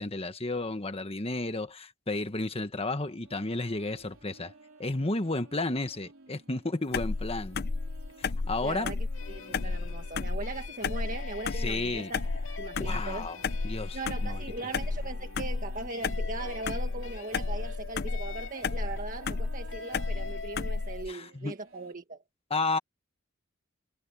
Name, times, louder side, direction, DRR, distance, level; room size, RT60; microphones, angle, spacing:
voice 1, 0.0-4.5 4.8-7.6 8.2-8.9 11.5-12.1 12.8-14.4 21.1-21.5 22.5-22.8, left 2 dB, 30° left, 1.5 m, -32 dB
sound 1, 3.2-21.9, right 2 dB, 75° right, 3.9 m, -55 dB
sound 2, 6.9-21.1, left 4 dB, 50° left, 0.6 m, -33 dB
voice 2, 8.6-9.0 9.3-12.2 12.6-13.3 13.9-22.2, right 3 dB, 40° right, 1.7 m, -39 dB
sound 3, 9.1-21.0, left 4 dB, 70° left, 2.3 m, -45 dB
head